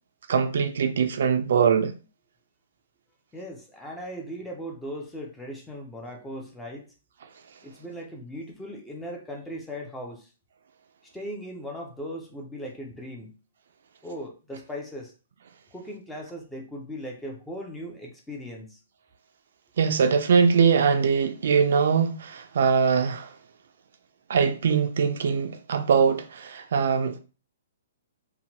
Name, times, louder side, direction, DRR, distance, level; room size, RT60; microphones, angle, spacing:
voice 1, 0.3-1.9 19.8-23.3 24.3-27.2, right 6 dB, 60° right, 0.3 m, -22 dB
voice 2, 3.3-6.9 7.6-10.3 11.1-13.3 14.0-15.1 15.7-18.8, equal, 5° left, 0.4 m, -38 dB
2.8 x 2.1 x 2.8 m
hypercardioid pair, 170°, 0 cm